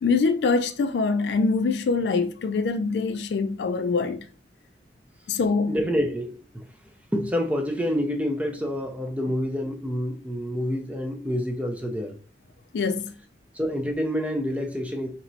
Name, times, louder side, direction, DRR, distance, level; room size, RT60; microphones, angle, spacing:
voice 1, 0.0-4.3 5.3-5.8 12.7-13.1, left 4 dB, 70° left, 0.4 m, -24 dB
voice 2, 5.7-6.6 7.1-12.2 13.5-15.1, equal, 10° right, 0.5 m, -27 dB
4.4 x 2.9 x 2.6 m
head